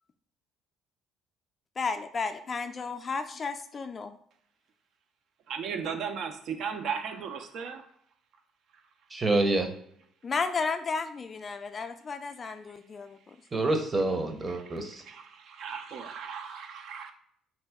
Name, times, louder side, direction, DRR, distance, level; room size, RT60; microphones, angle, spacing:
voice 1, 1.8-4.2 10.2-13.4, left 4 dB, 35° left, 8 dB, 0.3 m, -33 dB
voice 2, 5.5-7.8 14.5-17.1, right 6 dB, 60° right, 6 dB, 0.4 m, -36 dB
voice 3, 9.1-9.7 13.5-14.9, right 2 dB, 30° right, 4 dB, 0.7 m, -27 dB
2.7 x 2.2 x 3.4 m, 0.67 s
hypercardioid pair, 55°, 0 cm